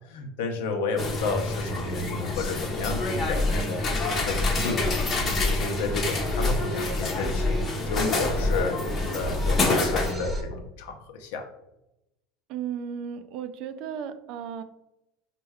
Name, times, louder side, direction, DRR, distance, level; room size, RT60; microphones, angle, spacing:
voice 1, 0.1-3.8 4.2-7.5 7.8-8.8 9.1-11.5, left 3 dB, 85° left, 5 dB, 0.6 m, -31 dB
sound 1, 1.0-10.1, left 2 dB, 30° left, 0.6 m, -28 dB
sound 2, 2.6-10.4, left 1 dB, 5° right, 0.6 m, -30 dB
voice 2, 12.5-14.6, right 8 dB, 55° right, 10 dB, 0.3 m, -35 dB
4.3 x 2.2 x 3.4 m, 0.88 s
supercardioid pair, 140°, 0 cm